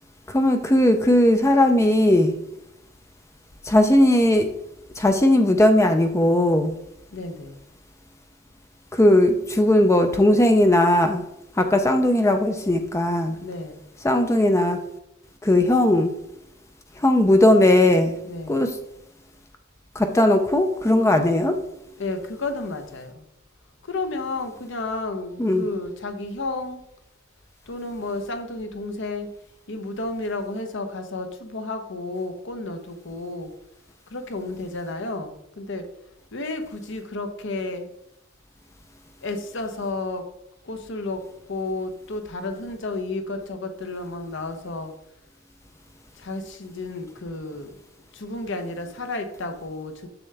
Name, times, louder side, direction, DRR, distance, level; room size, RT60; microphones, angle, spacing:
voice 1, 0.3-2.4 3.6-4.5 5.0-6.7 8.9-11.2 11.6-13.4 14.0-14.8 15.4-16.1 17.0-18.2 18.5-18.8 20.0-21.6 25.4-25.7, left 1 dB, 15° left, 6 dB, 0.5 m, -18 dB
voice 2, 7.1-7.6 13.3-13.8 18.2-18.6 22.0-23.2 23.8-26.8 27.7-29.3 29.7-33.5 34.1-35.9 36.3-37.9 39.2-40.2 40.6-41.2 41.5-44.9 46.1-47.8 48.1-50.1, left 2 dB, 60° left, 7 dB, 0.9 m, -32 dB
7.0 x 6.6 x 3.4 m, 0.82 s
head